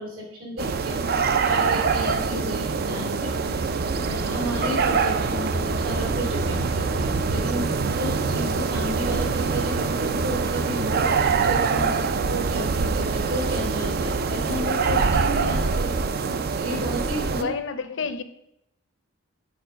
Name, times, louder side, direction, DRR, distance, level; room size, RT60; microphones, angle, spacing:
voice 1, 0.0-15.9 16.5-17.5, equal, 80° right, -2 dB, 3.1 m, -33 dB
sound 1, 0.6-17.4, right 4 dB, 45° right, 0.4 m, -24 dB
voice 2, 17.3-18.2, left 4 dB, 60° left, 10 dB, 0.6 m, -29 dB
6.8 x 4.4 x 5.2 m, 0.81 s
head